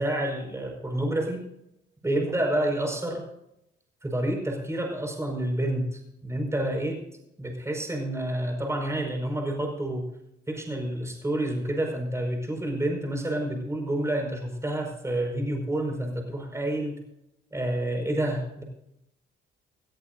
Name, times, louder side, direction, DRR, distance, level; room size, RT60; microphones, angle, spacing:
voice 1, 0.0-1.4 2.0-3.2 4.0-7.0 7.4-10.1 10.5-17.0 17.5-18.6, right 1 dB, 15° right, 2 dB, 5.2 m, -29 dB
20.0 x 14.0 x 2.6 m, 0.80 s
cardioid pair, 90°, 20 cm